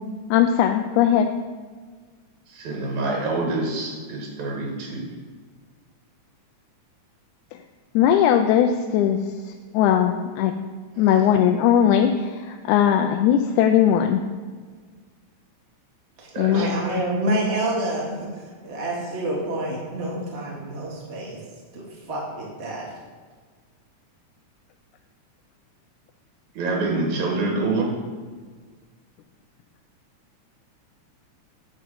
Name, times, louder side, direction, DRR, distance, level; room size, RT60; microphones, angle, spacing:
voice 1, 0.3-1.3 8.0-9.2 9.7-10.6 11.0-14.2 16.4-16.7, left 9 dB, 90° left, 5 dB, 2.0 m, -19 dB
voice 2, 2.5-5.1 16.3-16.7 26.5-27.9, right 3 dB, 75° right, -1 dB, 2.9 m, -26 dB
voice 3, 16.2-21.4 21.7-22.9, right 1 dB, 30° right, -4 dB, 1.4 m, -28 dB
10.0 x 3.8 x 6.9 m, 1.5 s
omnidirectional pair, 3.4 m